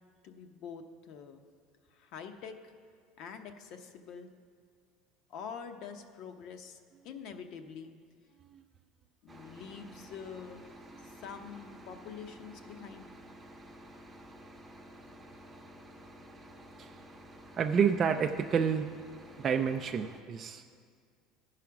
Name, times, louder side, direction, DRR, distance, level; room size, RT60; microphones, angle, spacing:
voice 1, 0.2-1.4 1.9-2.7 3.2-4.3 5.3-6.8 7.0-7.9 9.2-10.7 11.0-13.1, left 6 dB, 55° left, 7 dB, 0.8 m, -45 dB
sound 1, 9.3-20.2, equal, 10° right, 0.8 m, -52 dB
voice 2, 17.6-18.9 19.4-20.6, right 7 dB, 30° right, 4 dB, 0.3 m, -29 dB
14.0 x 4.9 x 5.9 m, 2.1 s
cardioid pair, 140°, 0 cm